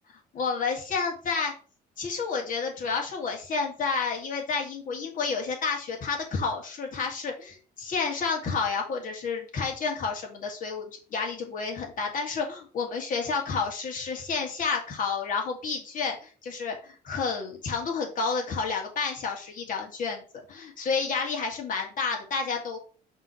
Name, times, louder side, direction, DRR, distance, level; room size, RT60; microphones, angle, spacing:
voice 1, 0.3-1.5 2.0-20.2 20.5-22.8, left 5 dB, 50° left, 1 dB, 2.3 m, -30 dB
5.9 x 3.3 x 5.8 m, 0.39 s
cardioid pair, 110°, 17 cm